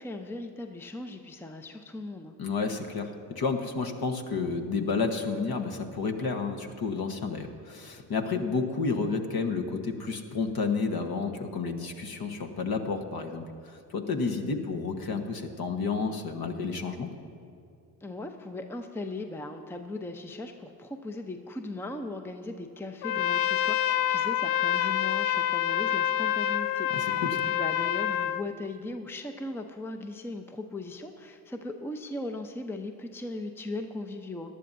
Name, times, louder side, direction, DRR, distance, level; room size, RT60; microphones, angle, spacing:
voice 1, 0.0-2.4 18.0-27.2 27.4-34.5, left 2 dB, 5° left, 6 dB, 0.7 m, -38 dB
voice 2, 2.4-17.1 26.9-27.4, left 4 dB, 45° left, 5 dB, 1.3 m, -31 dB
Trumpet, 23.0-28.4, left 11 dB, 65° left, 0.6 m, -27 dB
18.5 x 11.5 x 2.7 m, 2.4 s
hypercardioid pair, 50°, 50 cm